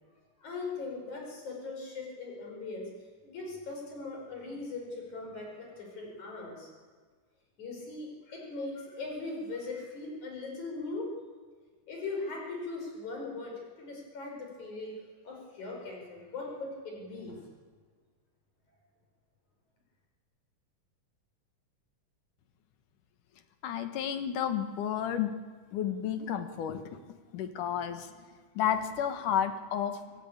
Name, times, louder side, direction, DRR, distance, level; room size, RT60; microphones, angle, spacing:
voice 1, 0.4-2.9 3.2-6.7 7.6-11.1 11.9-14.9 15.2-17.5, left 3 dB, 70° left, 0 dB, 6.5 m, -39 dB
voice 2, 23.6-25.4 25.7-27.0 27.3-28.1 28.6-30.0, left 9 dB, 85° left, 9 dB, 2.9 m, -31 dB
25.5 x 16.5 x 8.8 m, 1.5 s
omnidirectional pair, 3.5 m